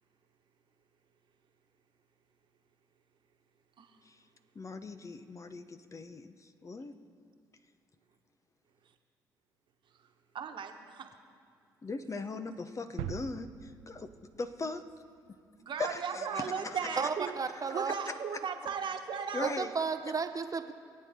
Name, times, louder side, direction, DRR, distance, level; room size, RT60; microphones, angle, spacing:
voice 1, 4.5-6.9 11.8-14.8 15.8-17.1 17.7-17.8 19.3-19.7, left 3 dB, 35° left, 9 dB, 0.9 m, -39 dB
voice 2, 10.3-11.1 15.6-17.3 17.7-19.5, right 7 dB, 60° right, 4 dB, 1.4 m, -36 dB
sound 1, 13.0-14.9 15.3-15.4, right 13 dB, 80° right, 0.4 m, -43 dB
voice 3, 17.0-17.9 19.4-20.7, right 5 dB, 40° right, 8 dB, 0.9 m, -33 dB
23.5 x 8.5 x 3.7 m, 2.2 s
hypercardioid pair, 50°, 9 cm